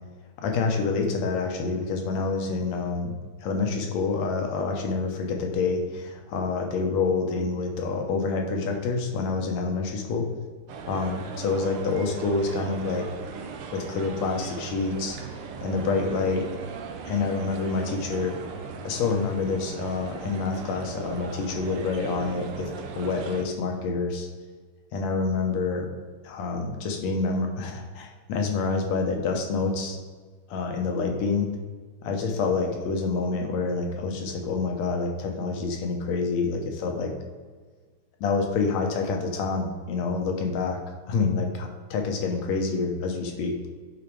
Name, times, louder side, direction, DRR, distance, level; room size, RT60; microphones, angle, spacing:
voice 1, 0.4-10.3 10.9-13.1 13.7-15.2 15.6-16.5 17.0-18.4 18.8-24.3 24.9-25.9 26.2-30.0 30.5-31.5 32.0-37.1 38.2-40.8 41.1-43.7, left 4 dB, 70° left, 2 dB, 2.1 m, -27 dB
sound 1, 10.7-23.4, right 5 dB, 90° right, 1.2 m, -38 dB
10.5 x 4.0 x 4.6 m, 1.5 s
omnidirectional pair, 3.4 m